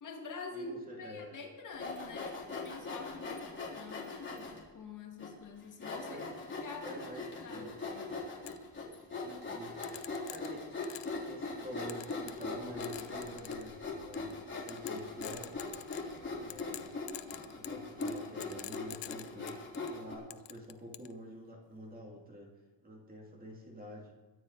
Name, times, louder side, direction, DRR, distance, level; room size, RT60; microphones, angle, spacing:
voice 1, 0.0-6.2 6.6-8.0, left 4 dB, 45° left, 1 dB, 2.3 m, -46 dB
voice 2, 0.5-1.4 6.0-6.4 6.8-7.3 7.5-7.8 9.2-9.9 10.3-10.7 11.2-15.6 16.4-16.9 17.5-19.6 19.9-22.5 22.8-24.1, equal, 20° right, 0 dB, 2.6 m, -48 dB
Sawing, 1.7-4.6 5.2-5.3 5.8-20.1, left 3 dB, 25° left, 3.7 m, -41 dB
sound 1, 8.5-8.6 9.8-11.2 11.9-12.5 12.8-13.7 14.1-14.3 14.7-16.2 16.5-19.9 20.3-21.1, left 15 dB, 70° left, 0.7 m, -46 dB
22.5 x 9.5 x 4.1 m, 1.3 s
cardioid pair, 165°, 44 cm